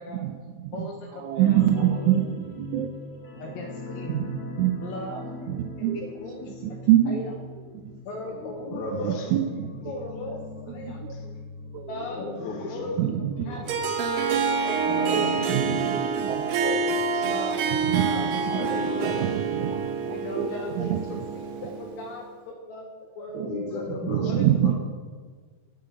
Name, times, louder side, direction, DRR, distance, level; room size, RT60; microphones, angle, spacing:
voice 1, 0.1-3.6 4.1-4.8 5.5-6.1 6.6-7.2 7.7-8.0 8.7-10.1 10.7-11.4 11.7-12.0 13.0-14.6 15.1-17.0 17.9-21.3 23.3-23.7 24.0-24.7, right 11 dB, 85° right, 3 dB, 2.0 m, -27 dB
voice 2, 0.7-1.6 3.4-4.2 4.8-5.2 5.9-6.6 7.1-7.2 8.0-9.2 9.9-10.4 10.7-11.0 11.9-12.2 12.7-12.9 13.5-13.7 14.1-14.2 14.6-15.8 17.2-19.3 20.1-21.0 21.4-23.6 24.2-24.4, left 2 dB, 75° left, 0 dB, 2.2 m, -37 dB
sound 1, 1.4-14.7 15.0-15.2 15.6-15.7, left 3 dB, 50° left, 2.4 m, -40 dB
voice 3, 8.1-9.3 12.0-13.1 13.5-13.8 14.5-15.5 17.1-17.3 18.6-19.2 19.6-19.7 21.1-21.2 23.5-24.3 24.6-24.7, left 3 dB, 90° left, 2 dB, 3.0 m, -36 dB
Harp, 13.7-22.1, right 5 dB, 70° right, 1.9 m, -27 dB
9.4 x 6.4 x 8.0 m, 1.5 s
omnidirectional pair, 3.4 m